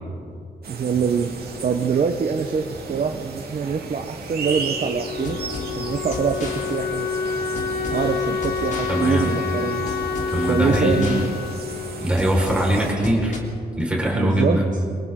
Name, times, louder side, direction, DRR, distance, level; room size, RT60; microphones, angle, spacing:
sound 1, 0.6-12.9, right 4 dB, 65° right, 2.9 m, -35 dB
voice 1, 0.7-1.3 1.6-5.4 5.8-7.1 7.9-9.9 10.4-11.3 14.1-14.6, right 6 dB, 50° right, 5 dB, 1.0 m, -24 dB
Wind instrument woodwind instrument, 4.4-13.1, left 6 dB, 75° left, 1.2 m, -29 dB
sound 2, 5.1-13.4, left 3 dB, 50° left, 3.2 m, -35 dB
voice 2, 8.9-9.4 10.3-11.1 12.0-13.4 13.8-14.7, right 1 dB, 5° right, -3 dB, 4.8 m, -21 dB
29.0 x 24.0 x 3.8 m, 2.4 s
wide cardioid pair, 150°, 17 cm